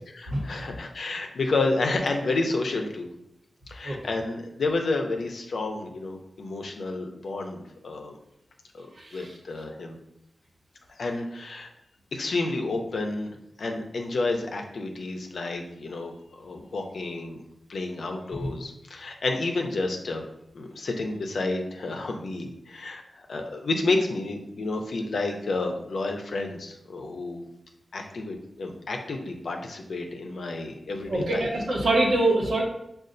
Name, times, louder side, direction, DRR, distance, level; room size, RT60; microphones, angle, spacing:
voice 1, 0.1-3.1 3.7-8.1 8.7-10.0 10.9-11.7 12.1-16.1 16.4-17.4 17.7-20.2 20.5-27.5 27.9-31.5, left 3 dB, 75° left, 3 dB, 0.5 m, -30 dB
voice 2, 31.1-32.6, right 2 dB, 75° right, -2 dB, 1.0 m, -24 dB
6.4 x 2.4 x 2.6 m, 0.81 s
wide cardioid pair, 115°, 0 cm